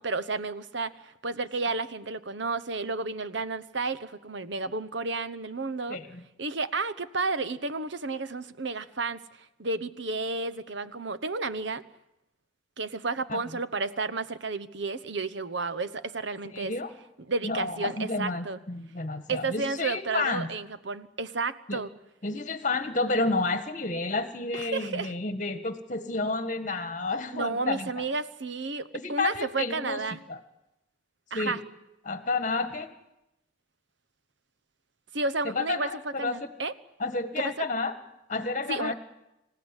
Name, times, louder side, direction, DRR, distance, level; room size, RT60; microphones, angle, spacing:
voice 1, 0.0-6.0 6.4-9.2 9.6-11.8 12.8-16.7 17.3-18.6 19.3-21.9 24.5-25.1 27.3-30.2 31.3-31.6 35.1-36.7 37.4-37.7 38.7-38.9, right 3 dB, 65° right, 14 dB, 1.0 m, -32 dB
voice 2, 5.9-6.2 13.3-13.4 16.5-16.9 17.4-20.5 21.7-21.8 22.2-28.0 28.9-30.0 30.3-30.4 31.3-31.6 32.0-32.9 35.4-36.5 37.0-37.9 38.3-38.9, left 3 dB, 40° left, 10 dB, 1.6 m, -30 dB
26.5 x 16.0 x 9.9 m, 0.92 s
head